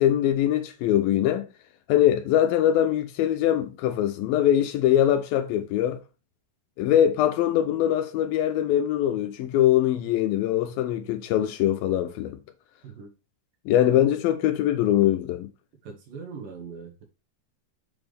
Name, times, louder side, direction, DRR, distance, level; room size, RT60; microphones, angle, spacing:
voice 1, 0.0-1.5 1.9-6.0 6.8-12.4 13.7-15.5, left 11 dB, 85° left, 2.6 m, -22 dB
voice 2, 12.8-13.1 13.8-14.0 15.8-17.0, right 5 dB, 70° right, 3.4 m, -41 dB
7.7 x 6.1 x 3.5 m
omnidirectional pair, 4.1 m